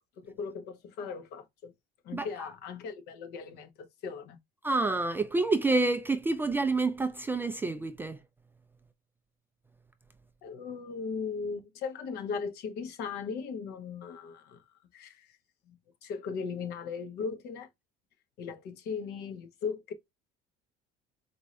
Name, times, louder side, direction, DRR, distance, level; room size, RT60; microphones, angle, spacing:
voice 1, 0.2-1.7 2.0-4.4 10.4-14.6 14.9-15.3 15.7-15.8 16.0-17.7 18.4-19.9, left 5 dB, 60° left, 1.1 m, -38 dB
voice 2, 4.6-8.2, right 3 dB, 10° right, 0.3 m, -28 dB
4.5 x 2.6 x 3.2 m
cardioid pair, 150°, 18 cm